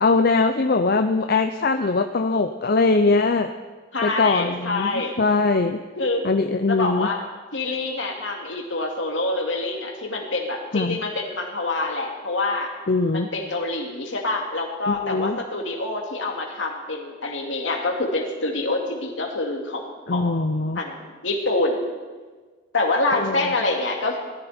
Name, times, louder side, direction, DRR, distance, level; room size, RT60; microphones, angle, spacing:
voice 1, 0.0-3.5 4.0-5.8 6.2-7.1 10.7-11.0 12.9-13.3 14.9-15.4 20.1-20.8 23.2-23.4, left 3 dB, 50° left, 6 dB, 0.6 m, -21 dB
voice 2, 3.9-5.2 6.0-6.2 6.7-7.2 7.5-12.7 13.1-20.5 20.7-21.9 22.7-24.2, left 2 dB, 70° left, 1 dB, 2.6 m, -26 dB
19.5 x 13.5 x 4.4 m, 1.4 s
head